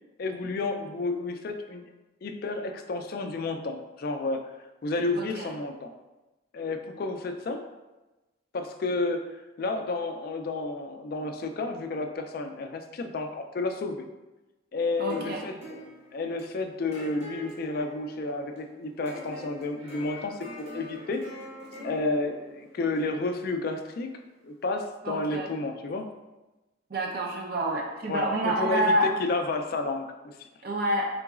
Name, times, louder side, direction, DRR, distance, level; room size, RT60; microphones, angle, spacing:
voice 1, 0.2-1.8 2.2-4.6 4.8-5.9 6.5-7.6 8.5-9.2 9.6-14.0 14.7-15.8 16.1-21.2 21.8-24.1 24.4-26.1 28.1-28.2 28.6-30.5, left 3 dB, 50° left, 6 dB, 0.3 m, -31 dB
voice 2, 5.1-5.5 15.0-15.4 25.0-25.5 26.9-29.1 30.6-31.1, right 1 dB, 50° right, -1 dB, 0.6 m, -27 dB
sound 1, 14.9-24.1, equal, 35° right, 1.0 m, -45 dB
3.8 x 3.8 x 2.3 m, 1.1 s
head